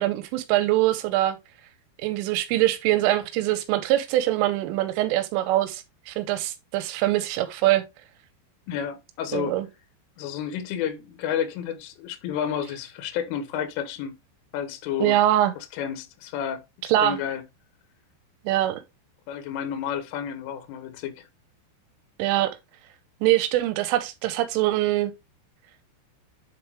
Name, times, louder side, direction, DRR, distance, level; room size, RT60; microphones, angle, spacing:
voice 1, 0.0-1.4 2.0-7.8 9.3-9.7 15.0-15.5 16.9-17.2 18.5-18.8 22.2-22.5 23.2-25.1, right 14 dB, 90° right, 3.4 m, -23 dB
voice 2, 8.7-9.6 10.2-14.1 14.5-15.2 15.7-16.6 17.0-17.4 19.3-21.3, left 9 dB, 85° left, 3.6 m, -31 dB
9.8 x 4.0 x 3.4 m
omnidirectional pair, 5.6 m